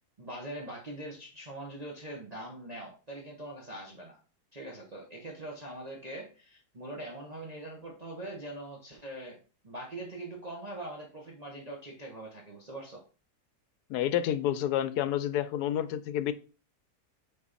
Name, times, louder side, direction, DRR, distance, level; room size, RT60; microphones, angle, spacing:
voice 1, 0.2-4.2 4.5-9.4 9.6-13.0, right 1 dB, 30° right, -2 dB, 1.0 m, -42 dB
voice 2, 13.9-16.3, left 11 dB, 80° left, 13 dB, 1.1 m, -29 dB
5.9 x 4.1 x 4.0 m, 0.36 s
omnidirectional pair, 1.7 m